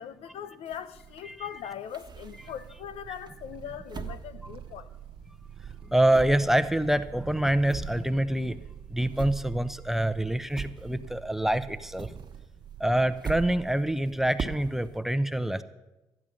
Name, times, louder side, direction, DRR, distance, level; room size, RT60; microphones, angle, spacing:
voice 1, 0.0-4.9, left 9 dB, 75° left, 0.6 m, -40 dB
sound 1, 0.7-2.8 3.3-5.4 5.6-11.3 11.6-15.0, right 6 dB, 45° right, 1.2 m, -41 dB
voice 2, 1.2-1.6 5.8-8.6 8.9-12.1 12.8-15.6, right 1 dB, 5° right, 0.7 m, -26 dB
Purr, 2.2-13.3, right 10 dB, 65° right, 0.8 m, -47 dB
12.0 x 10.0 x 6.3 m
supercardioid pair, 60°, 10 cm